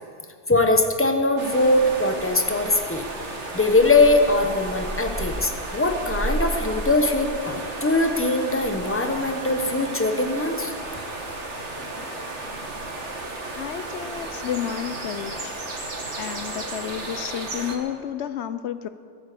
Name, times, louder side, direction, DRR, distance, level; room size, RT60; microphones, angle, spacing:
voice 1, 0.5-3.0 3.5-10.7, left 2 dB, 10° left, 5 dB, 1.2 m, -21 dB
sound 1, 1.4-17.8, right 2 dB, 80° right, 2.1 m, -33 dB
voice 2, 13.6-15.5 16.2-18.9, left 9 dB, 75° left, 12 dB, 0.9 m, -31 dB
22.0 x 8.9 x 6.9 m, 2.2 s
omnidirectional pair, 1.2 m